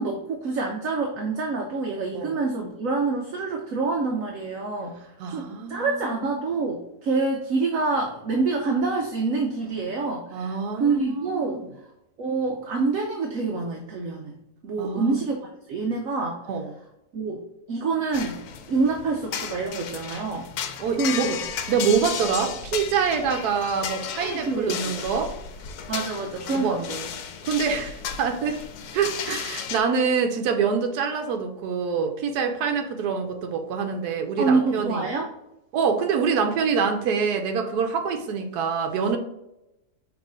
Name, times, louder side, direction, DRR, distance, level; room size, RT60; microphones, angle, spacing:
voice 1, 0.0-11.6 12.2-14.3 14.6-15.4 15.7-16.4 17.1-17.4 17.7-18.4 18.7-20.5 21.0-21.4 24.2-24.7 25.9-27.1 34.4-35.3, right 3 dB, 65° right, 1.1 m, -26 dB
voice 2, 5.2-6.1 10.3-11.7 14.8-15.2 16.5-16.7 20.8-21.3 21.7-25.4 26.5-26.8 27.4-28.6 28.9-35.0 35.7-39.2, right 6 dB, 85° right, 1.3 m, -25 dB
sound 1, 18.1-29.8, left 7 dB, 85° left, 1.2 m, -34 dB
6.0 x 3.2 x 5.0 m
omnidirectional pair, 1.6 m